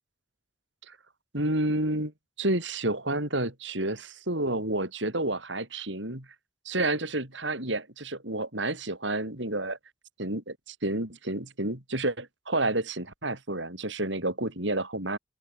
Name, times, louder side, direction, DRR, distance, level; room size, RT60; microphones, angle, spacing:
voice 1, 1.3-2.1 2.4-6.3 6.6-9.8 10.2-15.2, right 2 dB, 70° right, 6.1 m, -30 dB
open air
head